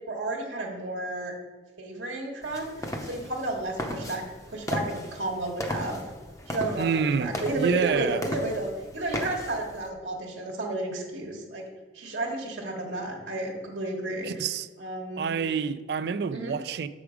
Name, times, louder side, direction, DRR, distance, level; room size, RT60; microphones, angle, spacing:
voice 1, 0.1-1.3 1.8-6.0 6.5-11.6 11.9-14.5 14.8-15.3 16.3-16.5, right 2 dB, 85° right, 1.3 m, -32 dB
sound 1, 2.4-9.9, left 1 dB, 15° left, 0.7 m, -36 dB
voice 2, 6.8-8.2 14.2-14.7 15.2-16.9, right 6 dB, 60° right, 0.3 m, -27 dB
7.0 x 4.9 x 5.0 m
head